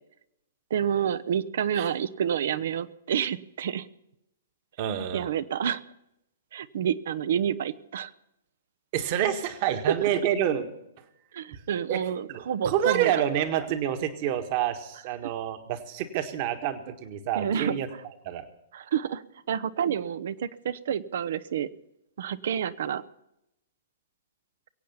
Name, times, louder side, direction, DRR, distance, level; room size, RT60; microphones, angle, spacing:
voice 1, 0.7-3.9 5.1-5.8 6.5-8.1 10.0-10.1 11.3-13.2 17.3-17.8 18.7-19.2 19.5-21.7 22.2-23.0, right 8 dB, 60° right, 15 dB, 0.7 m, -29 dB
voice 2, 4.8-5.3 8.9-10.7 11.5-11.6 11.9-12.0 12.3-17.9 18.2-18.4, right 10 dB, 45° right, 8 dB, 1.5 m, -28 dB
23.0 x 8.5 x 5.6 m, 0.84 s
figure-of-eight pair, 115°, 0 cm